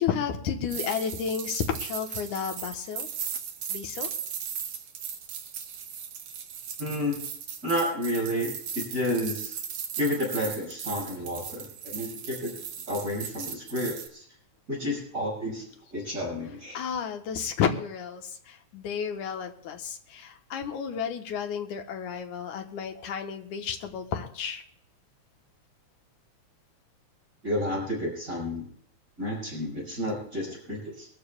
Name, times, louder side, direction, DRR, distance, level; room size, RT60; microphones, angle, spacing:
voice 1, 0.0-3.1 3.7-4.1 16.7-24.6, left 7 dB, 90° left, 4 dB, 2.6 m, -32 dB
sound 1, 0.7-14.1, right 7 dB, 85° right, 2.8 m, -37 dB
voice 2, 6.8-7.2 7.6-9.6 10.0-12.5 12.9-14.2 14.7-15.6 15.9-16.8 27.4-28.7 29.2-31.1, left 1 dB, 25° right, -4 dB, 6.4 m, -31 dB
24.0 x 14.0 x 2.3 m, 0.64 s
omnidirectional pair, 3.4 m